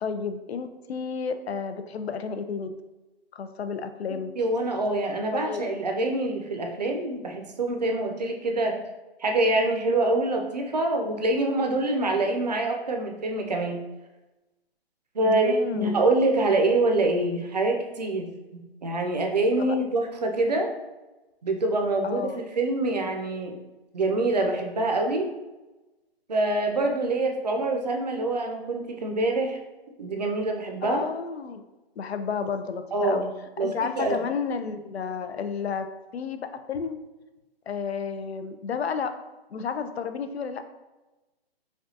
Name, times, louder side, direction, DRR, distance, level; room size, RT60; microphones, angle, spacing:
voice 1, 0.0-2.7 3.3-4.3 5.3-5.6 15.2-16.0 19.6-19.8 22.0-22.4 30.8-31.6 32.0-33.2 33.6-35.9 36.1-36.4 36.7-37.0 37.7-39.1 39.5-40.6, left 6 dB, 85° left, 9 dB, 0.5 m, -31 dB
voice 2, 4.4-8.8 9.2-13.8 15.1-20.7 21.4-22.2 22.6-23.5 23.9-25.3 26.3-29.6 30.0-31.1 32.9-33.3 33.6-34.2, right 2 dB, 45° right, 3 dB, 0.5 m, -25 dB
4.9 x 2.3 x 2.7 m, 1.1 s
hypercardioid pair, 175°, 31 cm